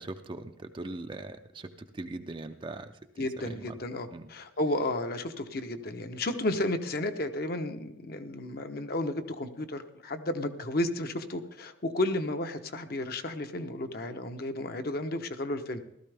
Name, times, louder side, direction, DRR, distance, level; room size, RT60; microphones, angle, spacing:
voice 1, 0.0-1.7 1.9-2.9 3.2-3.7 4.1-4.3, right 2 dB, 25° right, 7 dB, 0.5 m, -40 dB
voice 2, 3.2-15.8, left 1 dB, 50° left, 7 dB, 0.9 m, -32 dB
15.5 x 13.5 x 3.4 m, 0.81 s
head